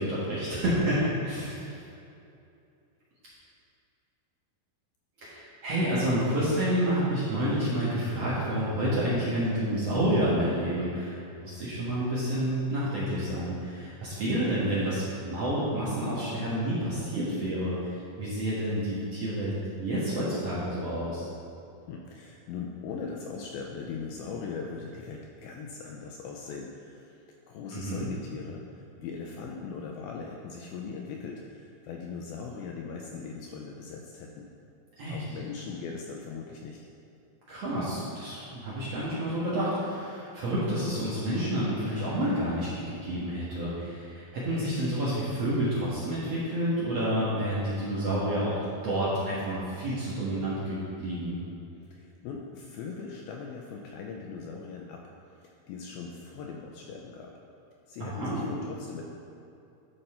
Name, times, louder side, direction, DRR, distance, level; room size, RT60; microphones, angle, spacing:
voice 1, 0.0-1.8 5.2-19.5 19.8-21.3 27.7-28.1 35.0-35.2 37.5-48.6 48.8-51.4 58.0-58.4, right 1 dB, 55° right, -9 dB, 1.9 m, -29 dB
voice 2, 21.9-34.5 35.1-36.8 51.9-55.1 55.4-57.3 57.9-59.0, left 5 dB, 80° left, 0 dB, 2.2 m, -40 dB
12.0 x 5.6 x 4.3 m, 2.6 s
omnidirectional pair, 4.8 m